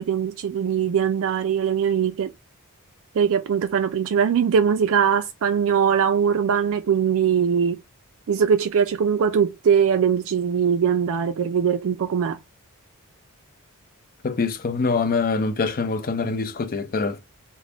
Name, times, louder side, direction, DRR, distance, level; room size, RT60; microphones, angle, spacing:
voice 1, 0.0-2.3 3.1-7.8 8.3-12.4, right 7 dB, 65° right, 0.4 m, -21 dB
voice 2, 14.2-17.2, left 4 dB, 40° left, 0.5 m, -24 dB
3.4 x 2.0 x 3.7 m
head